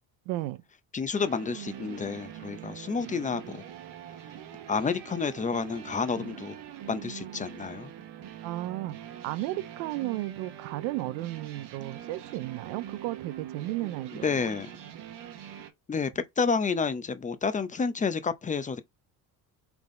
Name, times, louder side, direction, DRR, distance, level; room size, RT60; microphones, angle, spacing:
voice 1, 0.3-0.6 8.4-14.3, right 16 dB, 85° right, 0.6 m, -34 dB
voice 2, 0.9-3.6 4.7-6.5 6.9-7.9 14.2-14.7 15.9-18.8, left 5 dB, 15° left, 0.6 m, -30 dB
sound 1, 1.1-15.7, right 10 dB, 65° right, 1.1 m, -43 dB
4.0 x 3.5 x 3.7 m
supercardioid pair, 95°, 44 cm